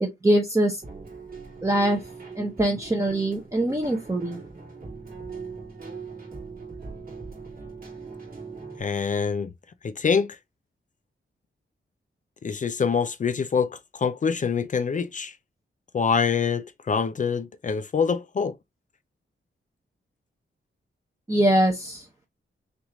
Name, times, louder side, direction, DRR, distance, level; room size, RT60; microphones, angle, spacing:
voice 1, 0.0-0.8 1.6-2.0 2.4-4.4 21.3-22.0, right 1 dB, 15° right, 0.8 m, -23 dB
Keyboard (musical), 0.8-8.8, right 4 dB, 45° right, 2.5 m, -41 dB
voice 2, 8.8-9.5 9.8-10.4 12.4-15.3 15.9-18.5, left 6 dB, 40° left, 0.4 m, -25 dB
6.1 x 2.5 x 3.0 m
wide cardioid pair, 165°, 21 cm